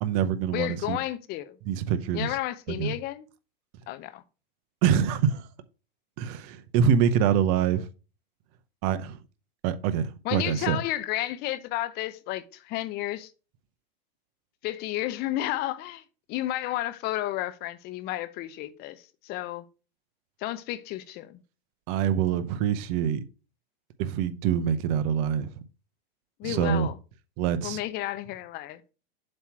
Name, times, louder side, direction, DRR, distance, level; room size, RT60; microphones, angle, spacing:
voice 1, 0.0-1.0 1.7-2.4 2.7-3.0 4.8-5.5 6.2-7.9 8.8-9.2 9.6-10.8 21.9-23.2 24.0-25.6 26.4-26.9 27.4-27.8, right 8 dB, 40° right, 0.7 m, -25 dB
voice 2, 0.5-1.5 2.1-3.3 3.9-4.2 10.2-13.3 14.6-16.0 16.3-19.6 20.4-21.4 26.4-27.0 27.6-28.8, left 15 dB, 30° left, 0.6 m, -32 dB
7.6 x 3.0 x 5.8 m
hypercardioid pair, 130°, 31 cm